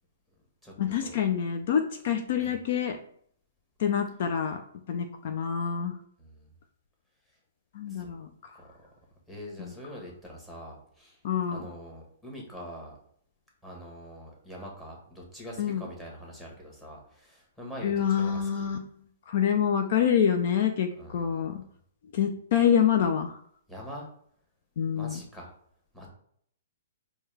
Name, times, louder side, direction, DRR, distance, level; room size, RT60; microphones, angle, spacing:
voice 1, 0.8-3.0 3.8-4.6 4.9-5.9 7.7-8.3 9.6-9.7 11.2-11.6 15.6-15.8 17.8-18.8 19.3-21.6 22.1-23.4 24.8-25.2, left 8 dB, 55° left, 6 dB, 0.4 m, -26 dB
voice 2, 9.3-11.2 11.5-13.0 13.6-18.7 20.9-21.5 23.7-24.1 24.9-25.5 25.9-26.1, equal, 5° left, -2 dB, 1.2 m, -44 dB
4.4 x 2.2 x 3.3 m, 0.64 s
hypercardioid pair, 130°, 0 cm